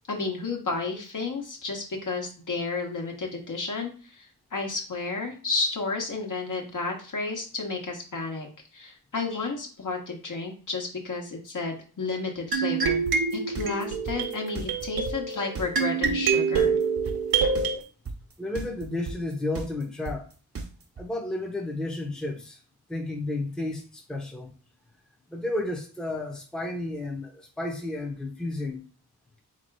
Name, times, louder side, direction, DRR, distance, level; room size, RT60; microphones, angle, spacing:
voice 1, 0.1-8.5 8.7-13.0 13.3-16.8, left 3 dB, 55° left, 1.3 m, -32 dB
sound 1, 12.5-17.8, right 5 dB, 75° right, 0.8 m, -26 dB
sound 2, 13.1-21.0, right 4 dB, 40° right, 0.8 m, -35 dB
voice 2, 18.4-20.3 21.0-22.6 22.9-24.5 25.3-28.9, left 2 dB, ahead, 0.9 m, -32 dB
3.6 x 2.9 x 4.7 m
wide cardioid pair, 85°, 37 cm